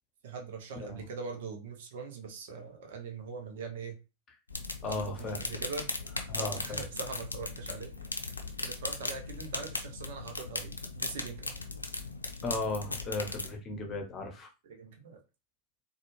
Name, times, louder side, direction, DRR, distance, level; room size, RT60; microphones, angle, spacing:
voice 1, 0.2-4.0 4.8-5.9 6.4-8.2 8.6-11.6 14.6-15.2, right 5 dB, 55° right, 0.7 m, -42 dB
sound 1, 4.5-13.6, left 3 dB, 80° left, 0.6 m, -38 dB
voice 2, 4.8-5.4 6.3-6.9 12.4-14.5, left 3 dB, 25° left, 0.9 m, -36 dB
4.1 x 2.4 x 3.1 m
figure-of-eight pair, 90°, 0 cm